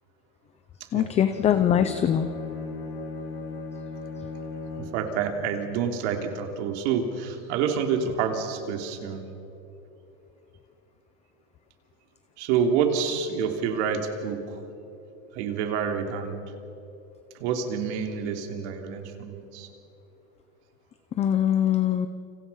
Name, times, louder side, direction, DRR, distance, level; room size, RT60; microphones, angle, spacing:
voice 1, 0.9-2.3 21.2-22.1, left 9 dB, 20° left, 11 dB, 0.5 m, -22 dB
Bowed string instrument, 1.2-5.1, left 3 dB, 35° left, 4.0 m, -37 dB
voice 2, 4.8-9.2 12.4-14.4 15.3-16.4 17.4-19.7, right 7 dB, 65° right, 5 dB, 3.1 m, -28 dB
29.5 x 27.0 x 5.6 m, 2.9 s
cardioid pair, 170°, 36 cm